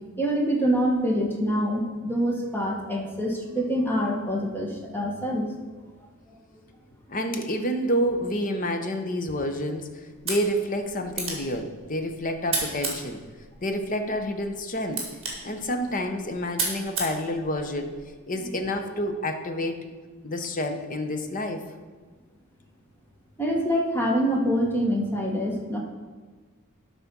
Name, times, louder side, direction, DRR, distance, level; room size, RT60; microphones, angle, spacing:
voice 1, 0.2-5.5 23.4-25.8, equal, 10° left, -1 dB, 1.2 m, -25 dB
voice 2, 7.1-9.9 10.2-13.2 13.6-15.1 15.4-17.9 18.3-19.8 20.2-21.6, equal, 35° left, 6 dB, 0.8 m, -28 dB
sound 1, 10.1-18.1, right 3 dB, 25° right, 2.2 m, -35 dB
11.5 x 4.2 x 6.0 m, 1.4 s
head